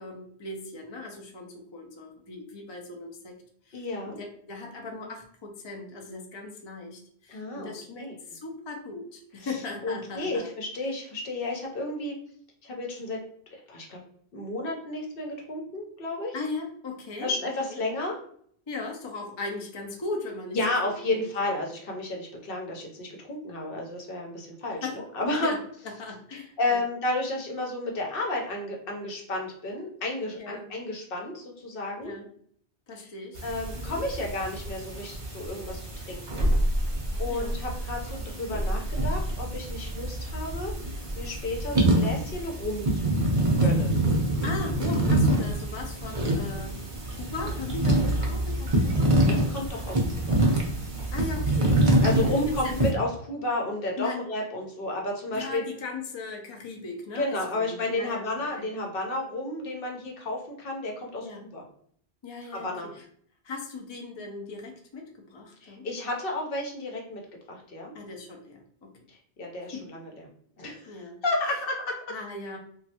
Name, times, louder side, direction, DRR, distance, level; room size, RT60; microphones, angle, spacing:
voice 1, 0.0-3.4 3.7-10.5 16.3-17.3 17.7-17.8 18.7-20.6 20.8-21.2 24.8-25.0 25.4-25.6 25.8-26.8 30.4-30.7 32.0-32.3 32.9-33.4 33.8-34.0 37.3-37.5 44.4-46.8 47.1-49.1 49.4-49.7 51.1-52.8 54.0-54.2 55.3-58.7 61.2-61.4 62.2-63.0 63.4-65.9 67.9-68.9 69.7-69.8 70.9-71.2 72.1-72.6, left 3 dB, 40° left, 1 dB, 0.4 m, -38 dB
voice 2, 3.7-4.2 7.3-8.1 9.4-9.6 9.8-12.1 12.6-13.2 13.5-14.0 14.3-16.4 17.2-18.2 20.5-25.5 26.3-32.1 32.9-33.1 33.4-36.5 37.2-40.7 41.1-44.0 49.3-50.0 50.3-50.4 52.0-55.6 57.1-61.3 61.5-61.6 62.5-62.9 65.6-67.2 67.5-67.9 69.1-70.1 70.6-72.0, left 2 dB, 65° left, 0 dB, 0.9 m, -32 dB
sound 1, 33.4-52.9, right 1 dB, 35° right, 0.6 m, -26 dB
3.1 x 2.3 x 2.8 m, 0.62 s
omnidirectional pair, 1.0 m